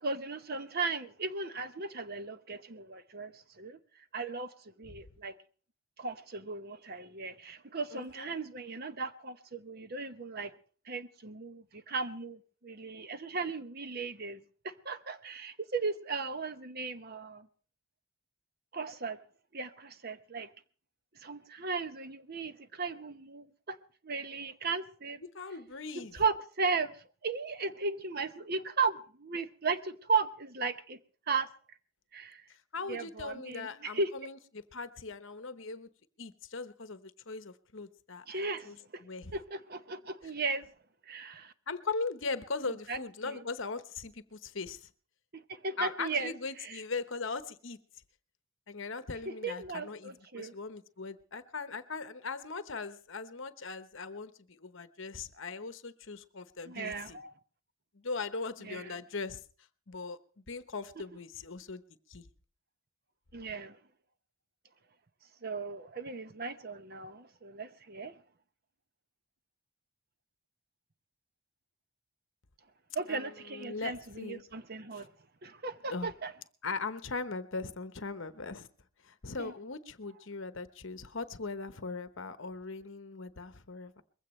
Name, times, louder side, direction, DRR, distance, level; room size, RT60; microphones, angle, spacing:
voice 1, 0.0-3.8 4.1-5.4 6.0-10.5 10.9-17.5 18.7-19.2 19.5-20.5 21.2-23.8 24.0-25.2 26.1-26.9 27.2-31.0 31.3-31.5 32.1-32.4 32.9-34.1 38.3-39.0 39.3-40.7 41.1-41.5 42.9-43.0 43.2-43.4 45.3-46.8 49.4-50.5 56.7-57.3 58.6-59.0 63.3-63.8 65.4-68.1 72.9-75.1 75.4-76.3 79.4-79.5, right 4 dB, 45° right, 0.9 m, -36 dB
voice 2, 7.9-8.4 25.3-26.1 32.5-35.9 36.2-38.8 39.0-39.3 41.7-44.9 45.8-47.8 48.7-57.2 57.9-59.4 59.9-60.2 60.5-61.8 62.1-62.3 73.1-74.4 74.9-75.0 75.9-76.1 76.6-78.7 79.0-84.0, left 4 dB, 60° left, 1.0 m, -39 dB
21.5 x 16.0 x 3.2 m
head